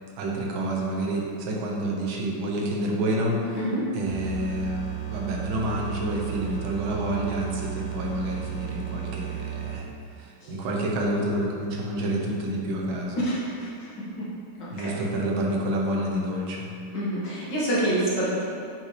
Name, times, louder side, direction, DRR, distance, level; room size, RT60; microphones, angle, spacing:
voice 1, 0.2-3.7 3.9-13.2 14.7-16.7, right 1 dB, 85° right, -1 dB, 1.6 m, -28 dB
sound 1, 4.1-10.0, right 10 dB, 40° left, 1.3 m, -34 dB
voice 2, 14.6-14.9 16.9-18.4, right 1 dB, 65° left, -9 dB, 2.2 m, -26 dB
5.5 x 5.4 x 3.2 m, 2.5 s
omnidirectional pair, 2.1 m